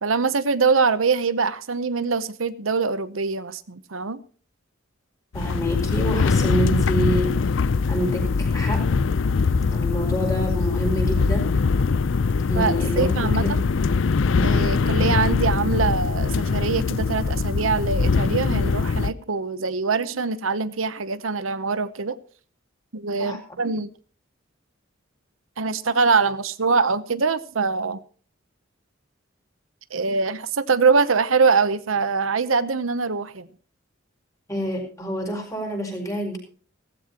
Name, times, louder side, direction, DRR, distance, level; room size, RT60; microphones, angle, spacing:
voice 1, 0.0-4.2 10.1-10.2 12.6-13.6 14.4-22.2 22.9-23.9 25.6-28.0 29.9-33.5, right 4 dB, 85° right, 0.9 m, -23 dB
sound 1, 5.3-19.1, left 4 dB, 65° left, 0.5 m, -22 dB
voice 2, 5.3-7.4 7.9-8.9 9.7-11.5 12.5-13.6 15.0-15.3 23.2-23.4 34.5-36.4, right 1 dB, 15° left, 5.6 m, -28 dB
17.0 x 15.0 x 3.0 m
head